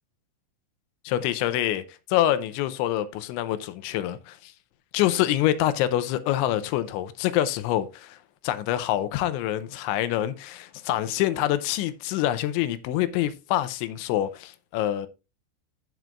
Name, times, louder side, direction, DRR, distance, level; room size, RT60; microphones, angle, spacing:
voice 1, 1.1-1.8 2.1-4.5 4.9-8.2 8.4-15.1, left 13 dB, 90° left, 3.1 m, -26 dB
14.5 x 6.0 x 2.4 m
omnidirectional pair, 5.3 m